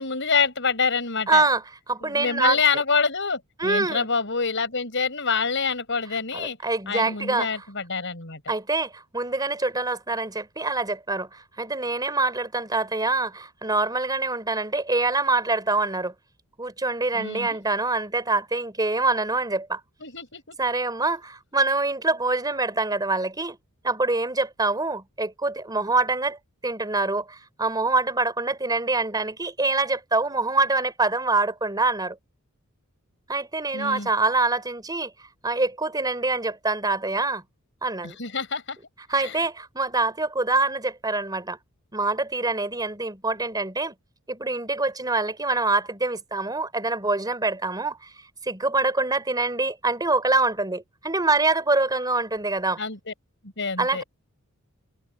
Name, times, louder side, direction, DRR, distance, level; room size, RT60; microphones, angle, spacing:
voice 1, 0.0-1.4 2.0-6.6 6.9-8.4 17.1-17.6 20.0-20.6 33.7-34.1 38.0-38.8 39.2-39.4 52.8-53.1 53.4-54.0, left 5 dB, 60° left, 7.8 m, -26 dB
voice 2, 1.3-2.6 3.6-4.1 6.3-7.6 8.5-16.1 16.6-19.8 20.6-23.6 23.8-32.2 33.3-37.4 37.8-38.2 39.1-41.6 41.9-43.9 44.3-52.8 53.8-54.0, right 3 dB, 20° right, 3.9 m, -25 dB
open air
head